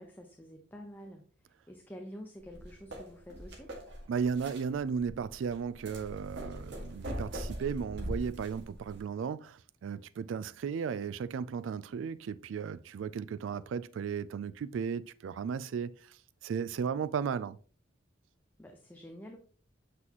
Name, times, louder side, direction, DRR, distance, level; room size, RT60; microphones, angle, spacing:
voice 1, 0.0-3.7 18.6-19.4, equal, 10° left, 0.8 m, -48 dB
sound 1, 2.4-9.0, equal, 65° right, 2.0 m, -42 dB
voice 2, 4.1-17.6, right 6 dB, 85° right, 0.3 m, -35 dB
7.7 x 6.0 x 3.0 m
head